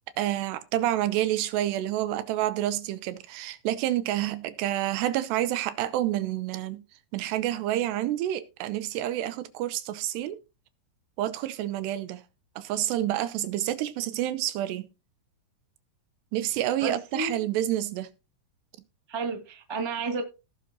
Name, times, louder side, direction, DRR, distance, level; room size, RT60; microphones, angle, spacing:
voice 1, 0.2-6.8 7.1-10.4 11.2-12.2 12.6-14.9 16.3-18.1, right 13 dB, 80° right, 2.8 m, -28 dB
voice 2, 16.8-17.4 19.1-20.2, right 3 dB, 25° right, 0.5 m, -31 dB
17.5 x 6.2 x 2.8 m
omnidirectional pair, 5.1 m